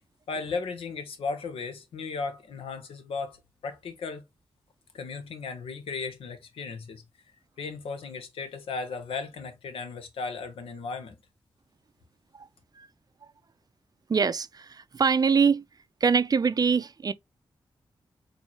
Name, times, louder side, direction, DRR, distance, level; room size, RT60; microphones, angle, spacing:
voice 1, 0.3-3.4 3.6-4.2 4.9-7.0 7.6-11.2, left 4 dB, 85° left, 0.9 m, -35 dB
voice 2, 14.1-15.6 16.0-17.1, right 5 dB, 45° right, 0.4 m, -24 dB
4.3 x 2.7 x 2.9 m
cardioid pair, 50°, 9 cm